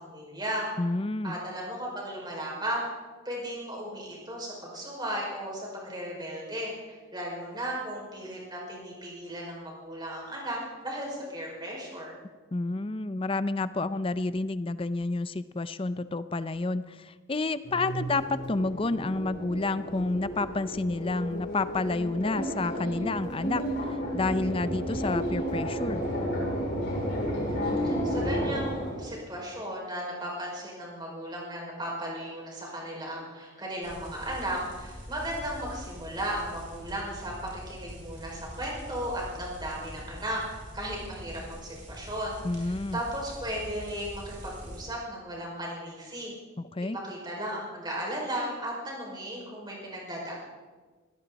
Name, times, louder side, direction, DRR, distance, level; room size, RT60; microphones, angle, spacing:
voice 1, 0.0-0.7 1.2-2.8 3.2-12.1 27.3-46.3 47.0-50.3, right 1 dB, 20° right, -2 dB, 5.5 m, -36 dB
voice 2, 0.8-1.4 12.5-26.0 42.4-43.0 46.6-47.0, left 3 dB, 25° left, 14 dB, 0.5 m, -30 dB
sound 1, 17.6-29.1, equal, 55° left, 6.1 m, -32 dB
sound 2, 33.8-44.8, equal, 40° right, 7.1 m, -44 dB
20.5 x 17.0 x 4.1 m, 1.4 s
head